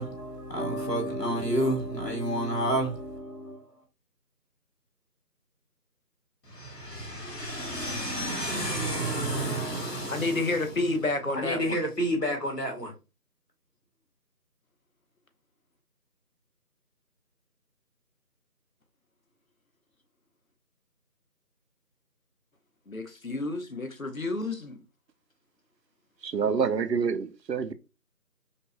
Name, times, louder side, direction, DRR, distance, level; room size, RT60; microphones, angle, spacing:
voice 1, 0.0-3.6 6.5-10.5 11.3-12.9, right 1 dB, 80° left, 1.7 m, -30 dB
voice 2, 10.1-11.8 22.9-24.8, left 2 dB, 55° left, 0.7 m, -30 dB
voice 3, 26.2-27.7, right 6 dB, 90° right, 0.6 m, -27 dB
5.2 x 2.1 x 2.6 m
figure-of-eight pair, 175°, 49 cm